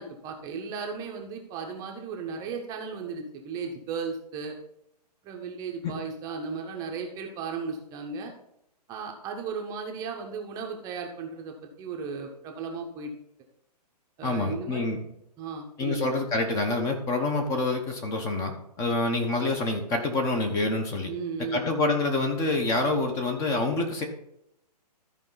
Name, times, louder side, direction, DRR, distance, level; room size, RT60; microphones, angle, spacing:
voice 1, 0.0-4.5 5.2-8.3 8.9-13.1 14.2-14.9 15.4-16.1 21.0-21.6, right 5 dB, 15° right, 2 dB, 0.8 m, -35 dB
voice 2, 14.2-15.0 15.8-21.1 21.5-24.0, left 2 dB, 15° left, 5 dB, 0.9 m, -27 dB
13.5 x 4.8 x 4.0 m, 0.79 s
hypercardioid pair, 155°, 21 cm